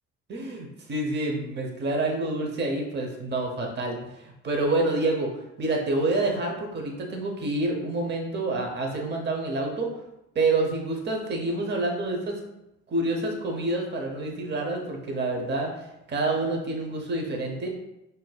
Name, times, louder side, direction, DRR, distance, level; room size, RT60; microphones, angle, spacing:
voice 1, 0.3-5.3 5.6-9.9 10.3-12.4 12.9-15.7 16.1-17.7, right 2 dB, 35° right, 1 dB, 0.7 m, -27 dB
5.8 x 2.6 x 2.2 m, 0.88 s
cardioid pair, 90°, 30 cm